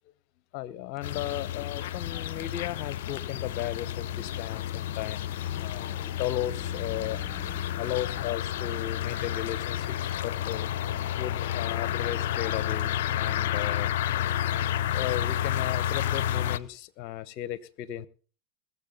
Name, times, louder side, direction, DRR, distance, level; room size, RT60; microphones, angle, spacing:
voice 1, 0.5-5.3 5.6-7.2 7.8-9.9 10.2-10.7 11.2-13.9 14.9-18.1, left 13 dB, 50° left, 0.9 m, -35 dB
sound 1, 1.0-16.6, left 11 dB, 65° left, 0.6 m, -30 dB
sound 2, 1.0-16.8, left 1 dB, 5° right, 2.1 m, -52 dB
20.0 x 7.5 x 5.4 m
hypercardioid pair, 105°, 0 cm